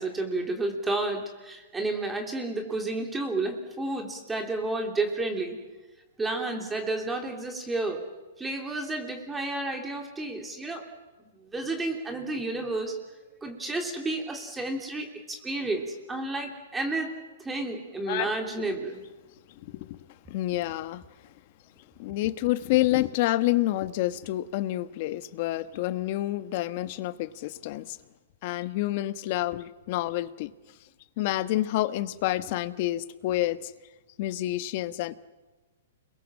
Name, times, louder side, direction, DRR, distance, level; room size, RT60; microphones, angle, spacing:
voice 1, 0.0-5.6 6.2-8.1 8.4-10.9 11.5-12.9 13.4-17.1 17.4-19.0, right 2 dB, 10° right, 3.2 m, -31 dB
voice 2, 20.3-21.0 22.0-28.0 28.4-30.5 31.2-33.7 34.2-35.2, left 16 dB, 45° left, 1.2 m, -28 dB
29.5 x 22.5 x 7.4 m
hypercardioid pair, 150°, 0 cm